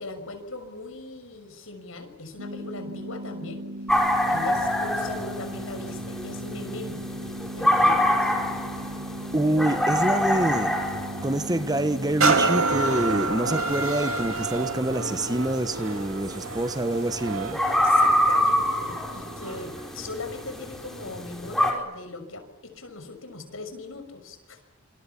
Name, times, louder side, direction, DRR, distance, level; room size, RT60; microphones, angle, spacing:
voice 1, 0.0-3.7 4.3-7.3 7.6-8.3 13.2-13.7 17.8-24.6, left 3 dB, 70° left, 7 dB, 6.3 m, -39 dB
sound 1, 2.4-12.4, right 1 dB, 50° right, 2.3 m, -37 dB
sound 2, 3.9-21.7, left 1 dB, ahead, 5.0 m, -27 dB
voice 2, 9.3-10.7 11.2-17.6, right 1 dB, 20° right, 11 dB, 1.0 m, -26 dB
sound 3, 12.2-19.8 20.4-20.5, right 3 dB, 75° right, 2.5 m, -28 dB
27.5 x 27.0 x 7.2 m, 0.90 s
head